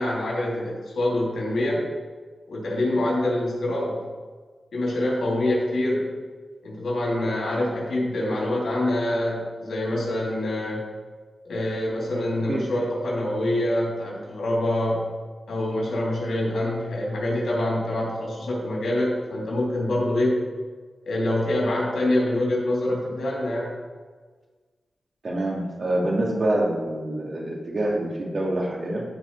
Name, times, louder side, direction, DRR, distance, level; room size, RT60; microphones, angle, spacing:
voice 1, 0.0-1.8 2.5-4.0 4.7-6.1 6.6-10.8 11.5-15.1 15.5-20.4 21.0-23.7, left 1 dB, 90° left, -3 dB, 3.2 m, -25 dB
voice 2, 25.2-29.0, right 1 dB, 50° right, -2 dB, 2.5 m, -26 dB
14.5 x 4.9 x 4.8 m, 1.4 s
wide cardioid pair, 95°, 0 cm